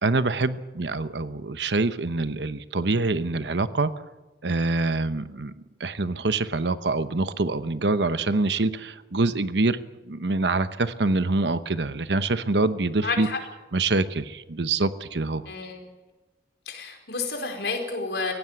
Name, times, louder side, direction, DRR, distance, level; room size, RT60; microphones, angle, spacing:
voice 1, 0.0-3.9 4.4-5.5 5.8-9.8 10.1-13.3 13.7-15.4, right 3 dB, 80° right, 12 dB, 1.0 m, -25 dB
voice 2, 13.0-13.4 15.5-15.8 16.7-18.3, left 4 dB, 75° left, 3 dB, 4.8 m, -30 dB
18.5 x 16.0 x 9.5 m, 1.2 s
head